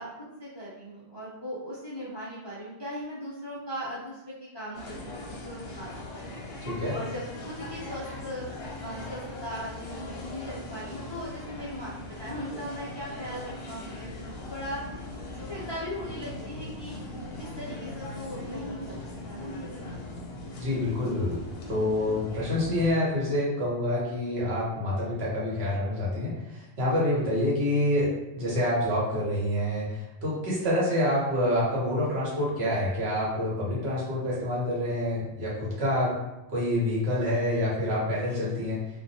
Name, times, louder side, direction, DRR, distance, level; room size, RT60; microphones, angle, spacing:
voice 1, 0.0-6.5 6.9-8.5 8.8-15.1 15.5-17.1 17.4-19.0 19.3-19.9 30.6-30.7, equal, 35° left, -9 dB, 0.4 m, -39 dB
sound 1, 4.7-22.9, left 2 dB, 65° left, 0.7 m, -40 dB
voice 2, 6.7-7.0 20.6-21.4 21.7-36.1 36.5-38.8, left 1 dB, 70° right, -6 dB, 1.1 m, -27 dB
2.3 x 2.1 x 2.6 m, 0.96 s
omnidirectional pair, 1.1 m